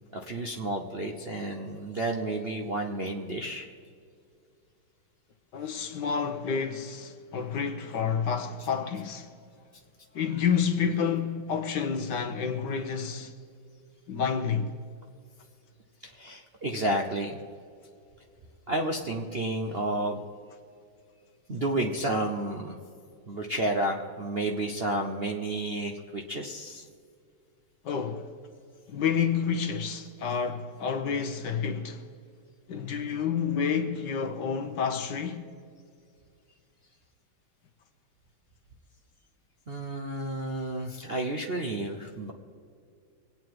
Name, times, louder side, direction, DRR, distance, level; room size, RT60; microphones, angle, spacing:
voice 1, 0.0-3.7 16.0-17.4 18.7-20.2 21.5-22.8 23.3-26.8 39.7-42.3, right 1 dB, 45° right, 0.8 m, -31 dB
voice 2, 5.5-9.3 10.1-13.3 14.1-14.7 27.8-28.3 28.9-32.0 32.7-35.5, left 6 dB, 60° left, 1.4 m, -29 dB
24.5 x 9.3 x 4.7 m
omnidirectional pair, 2.3 m